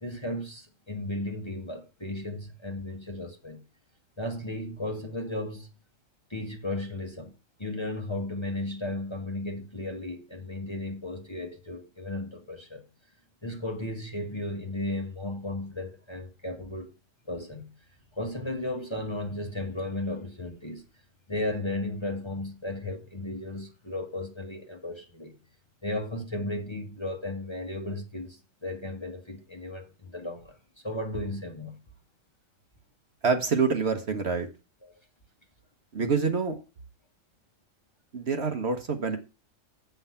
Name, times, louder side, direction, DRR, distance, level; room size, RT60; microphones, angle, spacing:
voice 1, 0.0-3.6 4.2-5.7 6.3-7.3 7.6-12.8 13.4-16.9 17.3-17.7 18.1-20.8 21.3-25.3 25.8-31.8 34.8-35.0, left 1 dB, 20° left, 1.2 m, -35 dB
voice 2, 33.2-34.5 35.9-36.6 38.1-39.2, right 5 dB, 55° right, 1.4 m, -26 dB
8.0 x 5.8 x 5.7 m
omnidirectional pair, 1.4 m